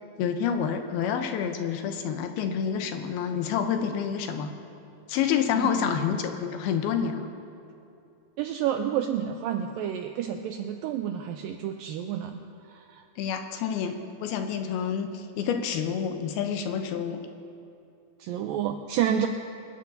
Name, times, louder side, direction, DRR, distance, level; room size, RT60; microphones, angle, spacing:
voice 1, 0.2-4.5 5.1-7.3 13.2-17.2, left 7 dB, 80° left, 6 dB, 2.7 m, -28 dB
voice 2, 5.5-6.0 8.4-12.4 12.6-13.0 18.2-19.3, right 9 dB, 80° right, 5 dB, 2.1 m, -30 dB
27.0 x 14.5 x 2.7 m, 2.6 s
omnidirectional pair, 4.5 m